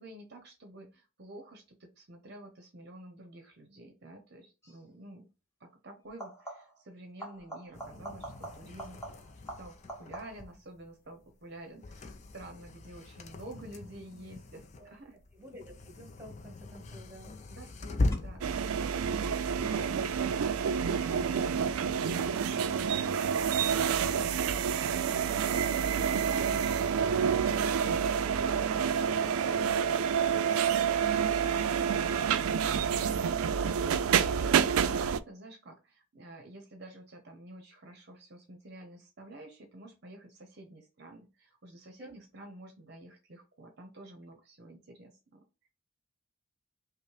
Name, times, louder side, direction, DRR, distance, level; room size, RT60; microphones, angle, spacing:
voice 1, 0.0-5.3 5.6-9.0 9.6-15.2 17.5-18.6 34.0-45.7, right 1 dB, 50° right, 4 dB, 0.7 m, -50 dB
sound 1, 4.6-4.9 6.1-6.9 7.2-10.6 16.0-16.6 18.1-18.2, right 1 dB, 15° left, 1.1 m, -45 dB
sound 2, 7.7-21.6, left 2 dB, 35° left, 0.4 m, -40 dB
voice 2, 15.3-17.4 42.0-42.1, equal, 10° right, 1 dB, 1.4 m, -51 dB
sound 3, 18.4-35.2, right 7 dB, 85° right, 0.3 m, -28 dB
5.3 x 2.1 x 3.2 m, 0.31 s
head